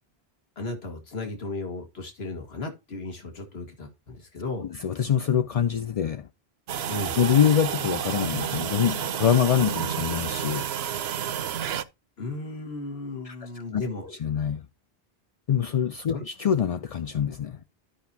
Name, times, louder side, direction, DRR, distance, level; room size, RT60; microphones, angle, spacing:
voice 1, 0.6-4.7 6.9-7.2 12.2-14.2 16.1-16.2, left 2 dB, 80° left, 2.1 m, -35 dB
voice 2, 4.7-6.3 7.2-10.7 13.2-13.8 14.2-14.6 15.5-17.6, left 8 dB, 50° left, 0.5 m, -25 dB
sound 1, 6.7-11.8, right 9 dB, 80° right, 1.0 m, -30 dB
12.5 x 5.9 x 2.8 m
omnidirectional pair, 1.0 m